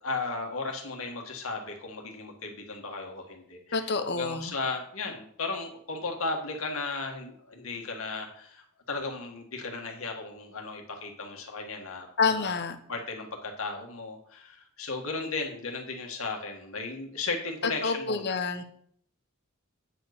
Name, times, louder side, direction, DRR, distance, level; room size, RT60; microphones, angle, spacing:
voice 1, 0.0-12.6 12.9-18.4, left 3 dB, 80° left, 2 dB, 1.8 m, -35 dB
voice 2, 3.7-4.5 12.2-12.8 17.8-18.6, left 4 dB, 55° left, 8 dB, 1.0 m, -28 dB
9.2 x 4.6 x 6.7 m, 0.64 s
head